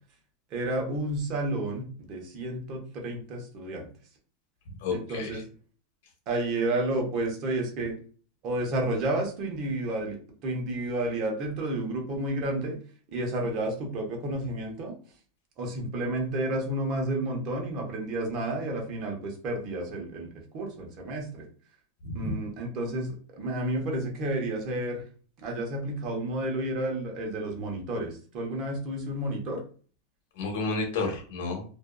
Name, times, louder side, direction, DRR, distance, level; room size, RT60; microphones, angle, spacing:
voice 1, 0.5-3.9 4.9-5.5 6.3-8.0 8.4-12.8 13.1-14.9 15.6-21.5 22.1-25.0 25.4-29.6, right 1 dB, 45° right, 1 dB, 0.8 m, -31 dB
voice 2, 4.8-5.4 22.0-22.4 30.4-31.6, left 3 dB, 70° left, 2 dB, 1.0 m, -31 dB
2.5 x 2.3 x 2.2 m, 0.42 s
supercardioid pair, 130°, 0 cm